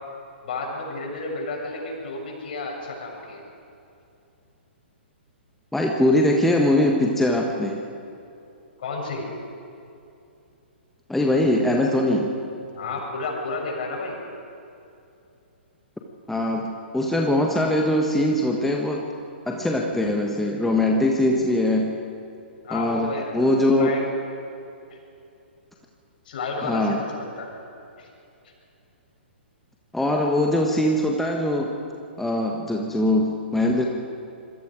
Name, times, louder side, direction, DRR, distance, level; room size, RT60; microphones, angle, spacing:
voice 1, 0.4-3.4 8.8-9.2 12.7-14.1 22.6-24.0 24.9-25.0 26.2-27.5 28.0-28.1, left 3 dB, 50° left, 0 dB, 6.8 m, -31 dB
voice 2, 5.7-7.8 11.1-12.3 16.3-19.0 19.5-21.9 22.7-24.0 26.6-27.0 29.9-31.8 32.2-33.8, left 1 dB, 5° left, 0 dB, 1.5 m, -22 dB
26.5 x 22.5 x 5.0 m, 2.7 s
figure-of-eight pair, 120°, 6 cm